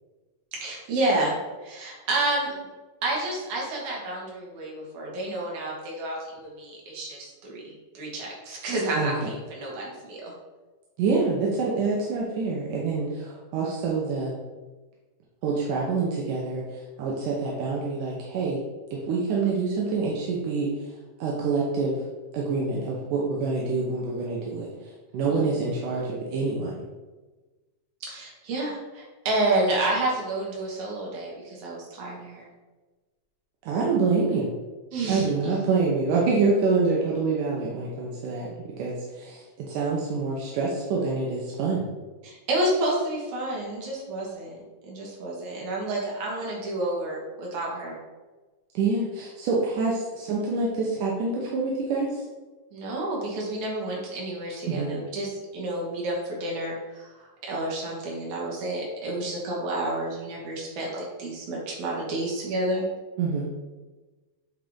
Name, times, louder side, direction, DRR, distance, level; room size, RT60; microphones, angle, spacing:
voice 1, 0.5-2.6 3.0-10.3 25.3-25.4 28.0-32.5 34.9-35.3 42.2-44.6 44.9-48.0 52.7-57.1 57.4-62.8, right 2 dB, 65° right, -3 dB, 2.9 m, -30 dB
voice 2, 8.9-9.3 11.0-14.3 15.4-18.6 18.9-22.0 22.3-26.8 33.6-34.5 35.0-41.9 48.7-52.2 54.7-54.9 63.2-63.5, right 4 dB, 85° right, -3 dB, 2.4 m, -26 dB
8.3 x 3.9 x 3.6 m, 1.2 s
omnidirectional pair, 3.7 m